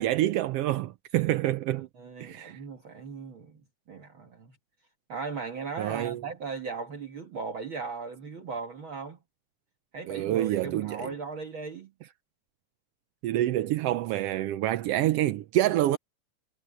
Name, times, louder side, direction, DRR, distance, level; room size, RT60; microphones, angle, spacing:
voice 1, 0.0-1.9 2.2-2.6 5.8-6.2 10.1-11.1 13.2-16.0, right 14 dB, 80° right, 1.4 m, -27 dB
voice 2, 1.8-3.6 3.9-4.6 5.1-9.2 9.9-11.9, right 5 dB, 45° right, 2.1 m, -38 dB
omnidirectional pair, 3.5 m